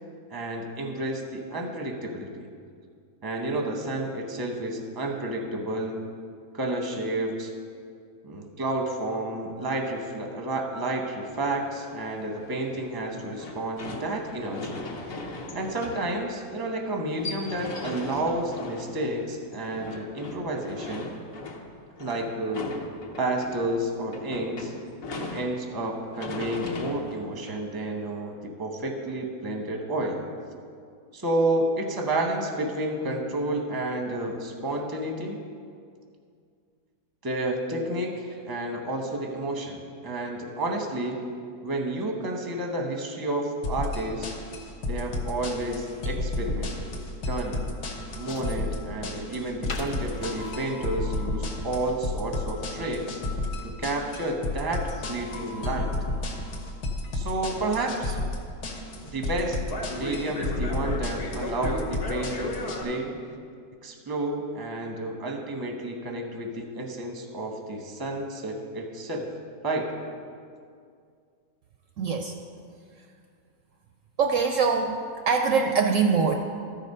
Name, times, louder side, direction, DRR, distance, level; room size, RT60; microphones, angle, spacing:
voice 1, 0.3-2.5 3.2-6.0 6.5-7.5 8.2-14.8 15.5-21.1 22.0-22.7 23.2-24.7 25.3-30.2 31.1-35.4 37.2-41.2 41.6-44.3 44.9-46.9 47.3-47.7 48.2-53.2 53.6-55.9 57.1-58.2 59.0-59.6 59.9-63.2 63.8-69.3 69.6-69.9, right 1 dB, 20° right, 2 dB, 0.7 m, -30 dB
sound 1, 11.3-28.2, left 2 dB, 60° left, 1.3 m, -39 dB
sound 2, 43.6-62.8, left 2 dB, 75° left, 1.6 m, -32 dB
sound 3, 45.9-51.7, left 3 dB, 40° left, 0.8 m, -44 dB
voice 2, 72.0-72.3 74.2-76.3, right 5 dB, 70° right, 4 dB, 0.8 m, -23 dB
13.5 x 4.9 x 5.4 m, 2.3 s
omnidirectional pair, 1.7 m